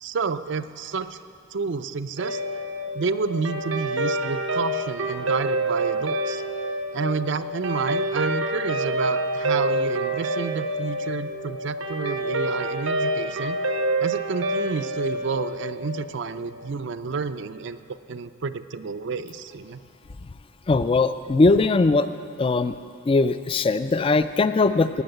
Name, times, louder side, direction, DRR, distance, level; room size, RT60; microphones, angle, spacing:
voice 1, 0.0-1.2 1.5-2.4 2.9-6.4 6.9-13.6 14.0-17.8 18.1-19.8, right 4 dB, 60° right, 11 dB, 0.5 m, -30 dB
Guitar, 2.2-16.7, right 1 dB, 80° right, 0.8 m, -27 dB
voice 2, 20.7-22.1 22.4-22.7 23.1-25.0, left 3 dB, 25° left, 12 dB, 0.3 m, -20 dB
18.0 x 6.3 x 7.8 m, 2.5 s
head